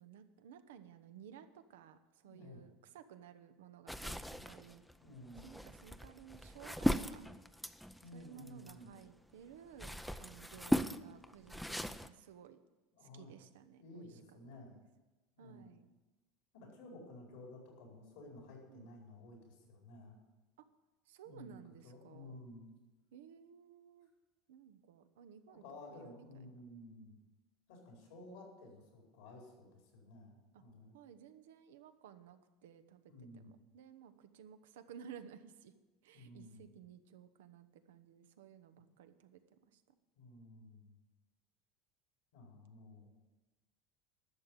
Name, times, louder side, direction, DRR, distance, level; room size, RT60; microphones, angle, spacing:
voice 1, 0.0-4.8 5.4-7.2 8.1-12.6 13.0-14.1 14.5-14.8 15.4-15.9 18.7-18.9 20.6-20.7 21.1-22.5 23.1-24.1 24.5-25.6 25.9-26.8 28.2-28.3 30.5-30.6 30.9-35.7 36.0-39.8, right 8 dB, 85° right, 10 dB, 0.9 m, -56 dB
voice 2, 2.3-2.6 5.0-5.4 8.0-8.9 13.0-13.3 13.8-14.8 15.4-15.7 16.5-20.2 21.2-22.7 25.5-27.2 27.7-30.9 33.1-33.5 36.1-36.6 40.1-41.0 42.3-43.1, left 2 dB, 80° left, 0 dB, 4.5 m, -54 dB
sound 1, 3.9-9.1 9.5-12.1, equal, ahead, 0.6 m, -38 dB
12.0 x 6.8 x 9.0 m, 1.1 s
supercardioid pair, 95°, 0 cm